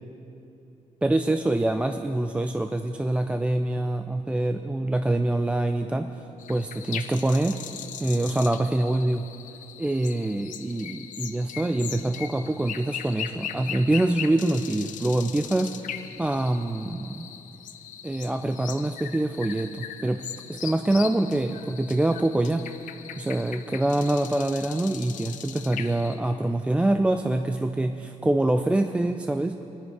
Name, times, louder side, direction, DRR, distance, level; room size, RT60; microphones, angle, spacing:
voice 1, 1.0-6.1 6.5-7.6 8.0-9.3 9.8-17.3 18.0-20.2 20.5-22.7 23.2-29.6, right 1 dB, 10° right, 6 dB, 0.3 m, -25 dB
sound 1, 6.4-26.2, left 9 dB, 70° left, 0.7 m, -39 dB
24.5 x 10.0 x 4.7 m, 2.8 s
cardioid pair, 175°, 14 cm